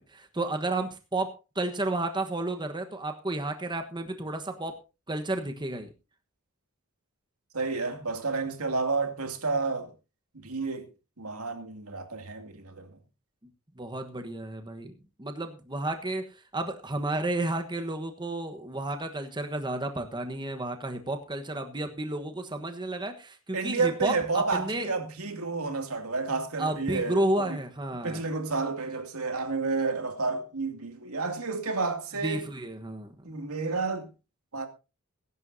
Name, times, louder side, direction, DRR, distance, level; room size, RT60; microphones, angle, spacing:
voice 1, 0.0-4.8 5.1-5.9 13.8-14.9 15.2-24.9 26.6-28.2 32.2-33.1, right 2 dB, 20° right, 1.3 m, -32 dB
voice 2, 7.5-9.9 10.4-10.9 11.2-12.9 23.5-27.5 28.0-32.4 33.2-34.1 34.5-34.7, right 4 dB, 85° right, 2.5 m, -30 dB
21.5 x 11.0 x 2.7 m
head